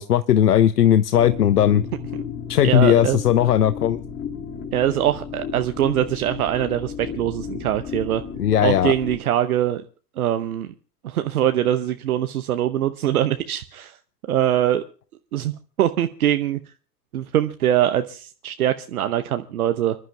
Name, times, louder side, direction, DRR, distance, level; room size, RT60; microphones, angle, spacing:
voice 1, 0.0-1.8 2.5-4.0 8.4-8.9, left 11 dB, 70° left, 15 dB, 0.7 m, -17 dB
sound 1, 1.1-9.2, left 6 dB, 20° left, 2.6 m, -33 dB
voice 2, 2.6-3.2 4.7-8.2 8.6-9.9 10.2-10.7 11.0-14.0 14.3-14.8 15.3-15.5 15.8-16.7 17.1-20.0, right 11 dB, 60° right, 9 dB, 0.9 m, -23 dB
29.5 x 11.5 x 2.2 m, 0.39 s
figure-of-eight pair, 90°, 48 cm